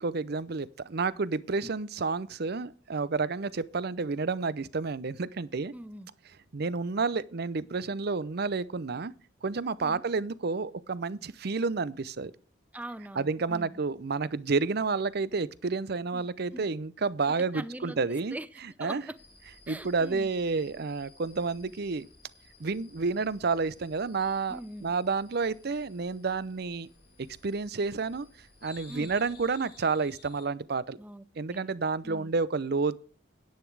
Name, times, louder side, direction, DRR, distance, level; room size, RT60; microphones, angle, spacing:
voice 1, 0.0-5.7 6.5-9.1 9.4-12.3 13.2-18.4 18.8-19.0 19.7-22.1 22.6-26.9 27.4-28.3 28.6-31.0 31.4-33.0, right 4 dB, 60° right, 0.6 m, -30 dB
voice 2, 5.7-6.1 9.8-10.0 12.7-13.8 16.1-16.7 17.4-18.0 18.3-19.2 19.7-20.3 24.5-24.9 28.9-29.1 31.0-31.2 31.5-31.7 32.0-32.3, right 1 dB, 10° right, 0.6 m, -42 dB
sound 1, 19.2-30.5, left 3 dB, 55° left, 2.0 m, -56 dB
10.5 x 9.3 x 4.7 m
head